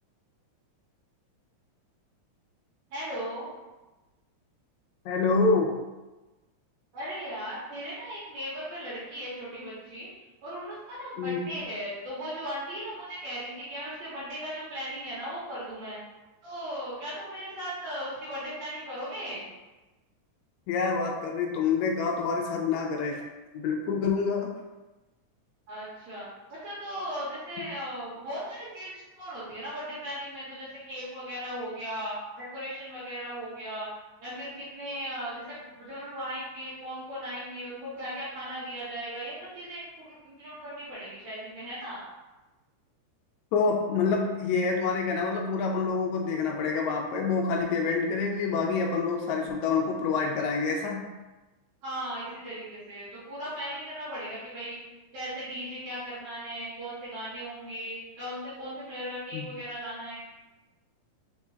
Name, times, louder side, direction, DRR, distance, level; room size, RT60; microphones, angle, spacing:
voice 1, 2.9-3.5 6.9-10.1 10.4-16.0 16.4-19.5 25.7-33.9 34.2-42.0 51.8-54.8 55.1-60.1, equal, 70° right, -8 dB, 2.3 m, -37 dB
voice 2, 5.0-5.7 11.2-11.4 20.7-23.2 23.5-24.5 43.5-51.0 59.3-59.4, left 4 dB, 80° left, 1 dB, 1.7 m, -27 dB
4.4 x 4.3 x 2.3 m, 1.1 s
omnidirectional pair, 3.5 m